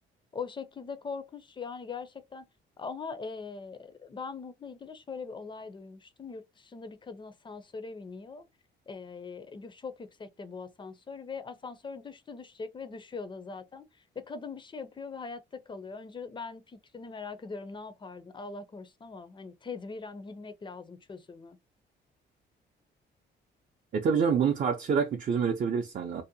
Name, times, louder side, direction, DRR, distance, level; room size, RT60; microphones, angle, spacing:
voice 1, 0.3-2.5 2.8-8.5 8.9-21.6, left 4 dB, 25° left, 0.4 m, -41 dB
voice 2, 23.9-26.2, right 6 dB, 45° right, 0.4 m, -27 dB
2.6 x 2.0 x 2.6 m
cardioid pair, 90°, 20 cm